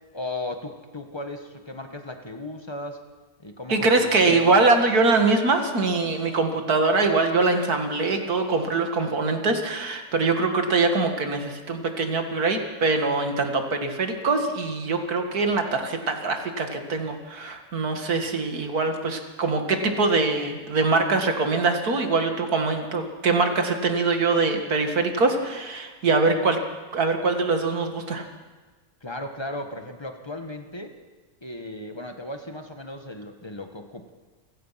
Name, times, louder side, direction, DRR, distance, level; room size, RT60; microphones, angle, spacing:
voice 1, 0.1-3.0 3.4-4.5 29.0-30.9 31.4-34.1, left 1 dB, 15° left, 5 dB, 1.6 m, -36 dB
voice 2, 3.7-26.6 26.9-28.3, right 3 dB, 70° right, 5 dB, 2.5 m, -23 dB
28.5 x 16.0 x 5.9 m, 1.3 s
omnidirectional pair, 1.6 m